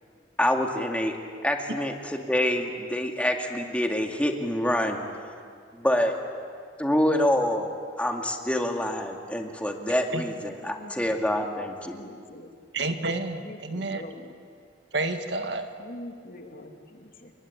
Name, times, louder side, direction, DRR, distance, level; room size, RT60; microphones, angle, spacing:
voice 1, 0.4-1.1 1.4-5.0 5.7-6.1 6.8-7.7 8.0-12.0, left 1 dB, 5° left, 3 dB, 2.2 m, -26 dB
voice 2, 10.6-11.5 11.9-12.5 13.3-14.3 15.8-17.3, left 1 dB, 50° left, 3 dB, 2.6 m, -44 dB
voice 3, 12.7-14.0 14.9-15.7, right 2 dB, 65° right, 6 dB, 1.9 m, -29 dB
29.0 x 23.0 x 8.6 m, 2.2 s
head